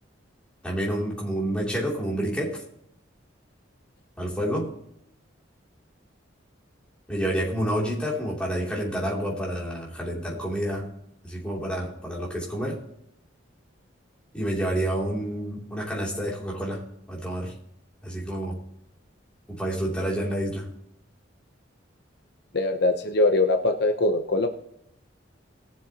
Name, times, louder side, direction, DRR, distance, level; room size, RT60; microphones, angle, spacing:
voice 1, 0.6-2.6 4.2-4.7 7.1-10.9 11.2-12.8 14.3-17.5 18.0-18.6 19.5-20.7, right 1 dB, 5° left, -4 dB, 2.9 m, -29 dB
voice 2, 22.5-24.5, left 2 dB, 60° left, 6 dB, 0.9 m, -22 dB
19.5 x 7.2 x 2.9 m, 0.77 s
head